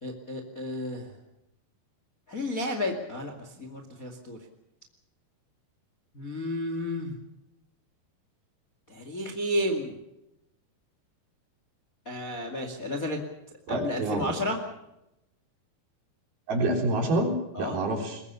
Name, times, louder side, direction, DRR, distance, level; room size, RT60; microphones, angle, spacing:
voice 1, 0.0-1.1 2.3-4.4 6.1-7.1 8.9-10.0 12.1-13.2 13.7-14.6 17.5-17.8, left 1 dB, 25° left, 5 dB, 2.0 m, -32 dB
voice 2, 13.7-14.3 16.5-18.2, right 2 dB, 60° right, 3 dB, 5.4 m, -27 dB
22.0 x 21.0 x 7.0 m, 0.87 s
omnidirectional pair, 4.9 m